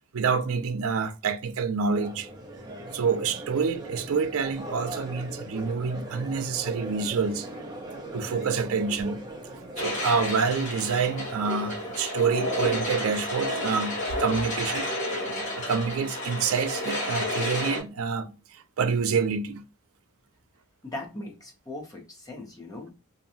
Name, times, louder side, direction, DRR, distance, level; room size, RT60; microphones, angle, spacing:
voice 1, 0.1-2.3 2.9-7.5 8.1-9.2 9.8-14.9 15.6-19.6, right 5 dB, 70° right, 0.4 m, -27 dB
Crowd, 1.8-12.0, right 1 dB, 20° right, 0.6 m, -40 dB
sound 1, 9.8-17.8, left 1 dB, 35° left, 1.2 m, -31 dB
voice 2, 20.8-22.9, left 2 dB, 15° left, 0.8 m, -39 dB
2.8 x 2.3 x 2.5 m
head